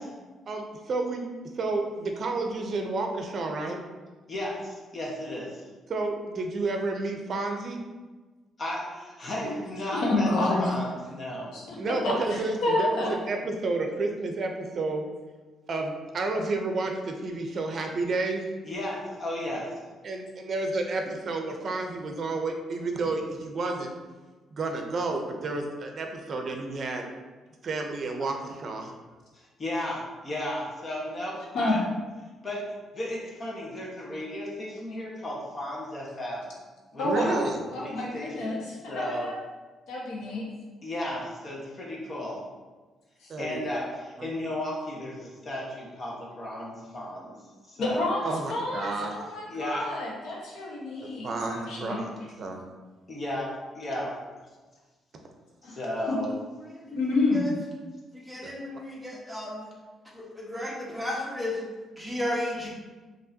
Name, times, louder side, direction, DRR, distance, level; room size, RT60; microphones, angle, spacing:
voice 1, 0.5-1.3 1.6-3.8 5.9-7.8 11.8-15.0 15.7-18.4 20.0-23.9 24.5-27.1 27.6-28.9 37.0-37.6 43.3-43.6 44.2-44.3 48.2-49.1 51.2-52.1 52.4-52.6 58.4-58.5, right 3 dB, 50° right, 3 dB, 0.6 m, -30 dB
voice 2, 4.3-5.7 8.6-10.3 10.6-11.5 12.1-12.2 18.6-19.7 29.3-31.8 32.4-32.6 32.9-36.5 36.9-37.1 37.7-39.3 40.8-42.4 43.4-47.4 47.6-48.1 49.5-49.9 53.1-54.1 55.6-56.3, left 1 dB, 40° left, -3 dB, 1.3 m, -34 dB
voice 3, 9.9-10.7 11.5-13.1 28.2-28.3 31.5-31.8 37.0-39.4 39.9-40.5 43.2-43.3 47.8-52.0 55.6-55.8 56.1-56.2 56.9-57.4, left 2 dB, 80° left, -4 dB, 1.2 m, -29 dB
voice 4, 56.6-56.9 57.3-57.5 58.3-59.5 60.1-61.6 61.9-62.7, left 1 dB, 5° right, -4 dB, 1.2 m, -33 dB
5.4 x 2.9 x 2.8 m, 1.3 s
cardioid pair, 90°, 0 cm